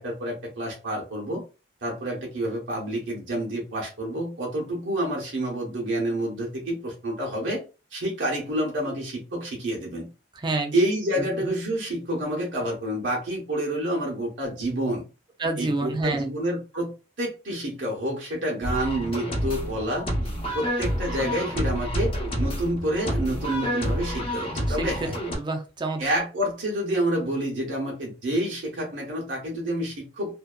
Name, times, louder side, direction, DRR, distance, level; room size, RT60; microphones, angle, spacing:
voice 1, 0.0-1.4 1.8-7.6 7.9-10.1 10.7-15.0 15.6-16.9 17.2-22.1 22.4-25.1 26.0-30.3, right 1 dB, 85° right, -2 dB, 0.8 m, -28 dB
voice 2, 10.3-10.7 11.1-11.3 15.4-16.3 24.7-25.1 25.3-26.0, right 2 dB, 25° right, 4 dB, 0.4 m, -28 dB
sound 1, 18.6-25.4, equal, 30° left, 0.7 m, -28 dB
2.6 x 2.2 x 2.3 m, 0.31 s
head